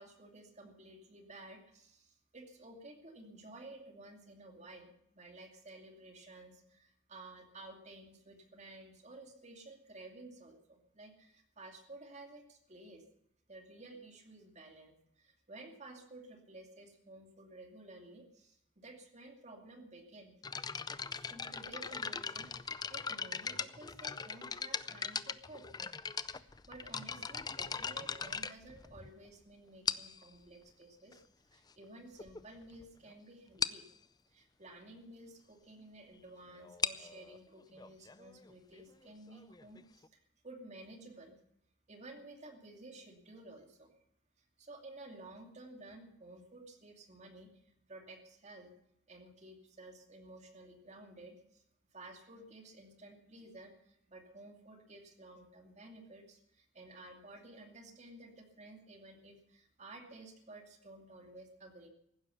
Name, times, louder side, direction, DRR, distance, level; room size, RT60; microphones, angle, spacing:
voice 1, 0.0-13.0 13.5-20.4 21.2-25.7 26.3-33.8 34.3-41.4 41.9-43.9 44.4-48.7 49.1-51.6 51.9-61.9, right 2 dB, 35° right, 4 dB, 2.5 m, -53 dB
sound 1, 20.4-29.3 29.9-30.3 31.1-31.2 31.8-31.9 32.2-32.4 32.7-32.8 33.1-33.2 33.6-33.9 36.6-40.1, left 6 dB, 20° left, 0.5 m, -40 dB
15.5 x 12.0 x 7.0 m, 0.77 s
head